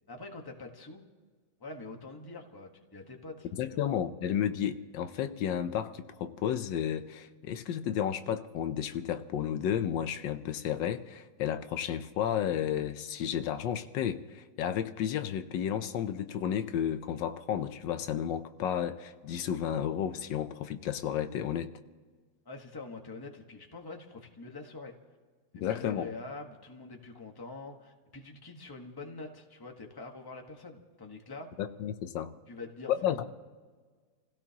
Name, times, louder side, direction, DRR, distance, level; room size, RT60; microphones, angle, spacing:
voice 1, 0.1-1.0 1.6-3.9 22.4-25.0 25.5-31.5 32.5-33.2, left 3 dB, 15° left, 1.2 m, -45 dB
voice 2, 3.6-21.7 25.5-26.1 31.6-32.3 33.0-33.2, left 9 dB, 80° left, 1.4 m, -32 dB
28.0 x 16.5 x 2.9 m
omnidirectional pair, 2.0 m